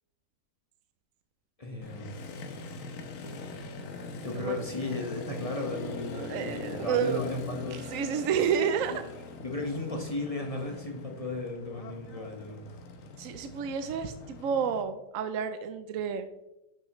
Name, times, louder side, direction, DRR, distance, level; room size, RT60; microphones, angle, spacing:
voice 1, 1.6-2.2 4.2-7.8 8.9-9.0 9.3-12.6, left 2 dB, 25° left, 1 dB, 1.2 m, -35 dB
Motorcycle, 1.8-14.8, left 3 dB, 55° left, 1.1 m, -42 dB
voice 2, 4.2-4.6 6.1-7.2 7.7-9.0 13.2-16.3, right 7 dB, 70° right, 9 dB, 0.8 m, -30 dB
10.5 x 6.4 x 3.1 m, 0.90 s
omnidirectional pair, 1.9 m